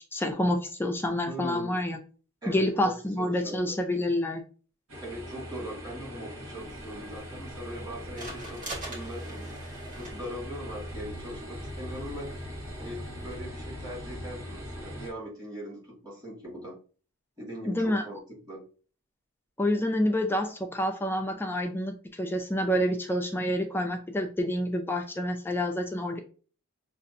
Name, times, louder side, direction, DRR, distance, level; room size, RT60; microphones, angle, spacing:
voice 1, 0.1-2.0 2.5-4.4 17.7-18.0 19.6-26.2, left 1 dB, 10° left, 5 dB, 0.4 m, -28 dB
voice 2, 1.3-1.8 2.4-3.8 5.0-9.5 10.0-12.3 12.8-16.8 17.4-18.2 18.5-18.7, equal, 20° right, -5 dB, 2.1 m, -40 dB
sound 1, 4.9-15.1, equal, 70° right, 1.2 m, -41 dB
sound 2, 6.6-13.4, right 2 dB, 35° right, 1.7 m, -45 dB
6.4 x 2.5 x 2.6 m, 0.38 s
head